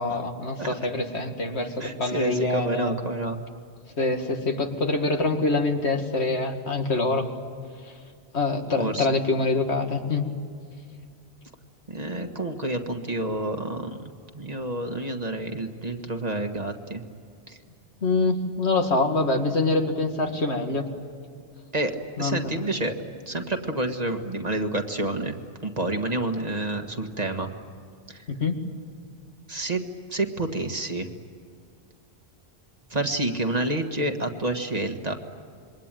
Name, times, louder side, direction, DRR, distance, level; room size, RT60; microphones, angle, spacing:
voice 1, 0.0-2.9 4.0-7.3 8.3-10.3 18.0-20.9 22.2-22.5 28.3-28.6, left 3 dB, 90° left, 4 dB, 2.3 m, -25 dB
voice 2, 1.8-3.4 8.8-9.1 11.9-17.0 17.5-17.6 21.7-23.0 23.3-25.4 25.6-27.5 28.1-28.2 29.5-31.1 32.9-35.2, right 2 dB, 40° right, 5 dB, 1.7 m, -29 dB
27.0 x 23.0 x 9.1 m, 2.2 s
omnidirectional pair, 1.1 m